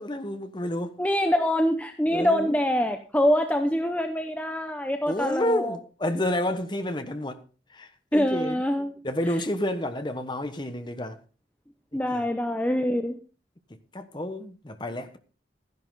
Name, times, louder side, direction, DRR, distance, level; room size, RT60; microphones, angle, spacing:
voice 1, 0.0-0.9 2.1-2.6 5.1-7.4 7.7-8.6 9.0-11.2 11.9-12.2 13.9-15.2, left 1 dB, 25° left, 1.1 m, -30 dB
voice 2, 1.0-5.8 8.1-8.9 11.9-13.2, equal, 10° left, 0.7 m, -25 dB
14.0 x 11.0 x 3.9 m
head